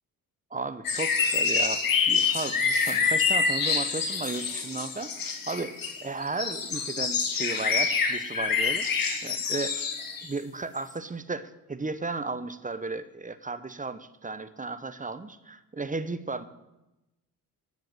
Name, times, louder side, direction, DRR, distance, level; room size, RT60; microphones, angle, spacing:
voice 1, 0.5-5.7 6.0-8.9 9.2-9.9 10.2-16.4, right 3 dB, 20° right, 12 dB, 0.9 m, -34 dB
sound 1, 0.8-10.3 10.9-11.0, left 5 dB, 55° left, 2.0 m, -27 dB
10.5 x 7.1 x 7.8 m, 0.95 s
supercardioid pair, 55°, 41 cm